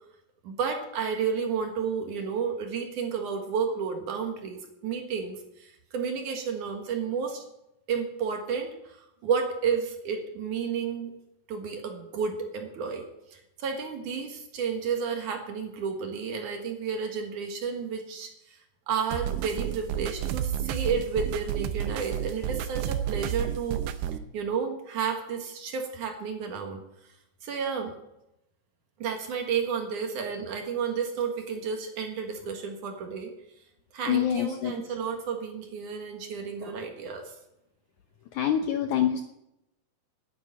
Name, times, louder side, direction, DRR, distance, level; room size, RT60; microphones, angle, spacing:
voice 1, 0.4-7.4 7.9-9.0 9.2-11.1 11.5-13.0 13.6-18.3 18.9-23.8 24.3-26.8 27.4-27.9 29.0-33.3 33.9-37.2, right 6 dB, 60° right, 4 dB, 2.8 m, -31 dB
sound 1, 19.1-24.2, right 10 dB, 90° right, 2.8 m, -31 dB
voice 2, 34.1-34.8 38.4-39.2, left 9 dB, 85° left, 6 dB, 1.7 m, -25 dB
10.0 x 9.7 x 8.8 m, 0.85 s
omnidirectional pair, 4.5 m